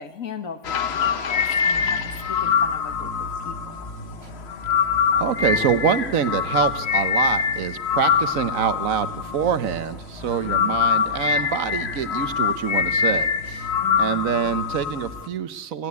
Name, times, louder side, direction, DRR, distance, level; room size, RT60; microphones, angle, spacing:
voice 1, 0.0-2.0 2.3-3.9 10.4-11.0 13.8-14.6, left 6 dB, 85° left, 8 dB, 1.9 m, -39 dB
sound 1, 0.6-9.9 10.2-15.3, left 7 dB, 55° left, 1.1 m, -24 dB
sound 2, 1.7-15.2, right 1 dB, 40° left, 7.6 m, -39 dB
voice 2, 5.2-13.7 14.0-15.9, right 8 dB, 90° right, 13 dB, 1.4 m, -25 dB
25.5 x 15.5 x 9.6 m, 1.2 s
omnidirectional pair, 1.4 m